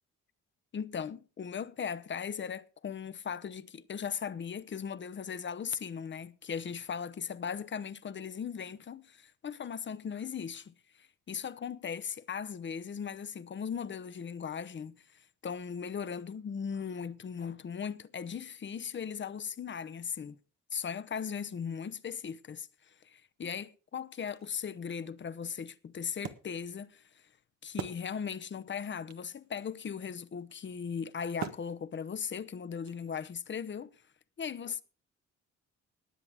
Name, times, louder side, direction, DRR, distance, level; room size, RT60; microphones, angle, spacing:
voice 1, 0.7-20.4 20.7-27.2 27.6-34.0 34.4-34.8, left 7 dB, 40° left, 0.9 m, -38 dB
Wood, 23.4-23.5 23.9-28.6 28.8-28.9 29.1-33.5, right 8 dB, 65° right, 1.4 m, -46 dB
20.5 x 7.7 x 3.5 m
cardioid pair, 90°, 30 cm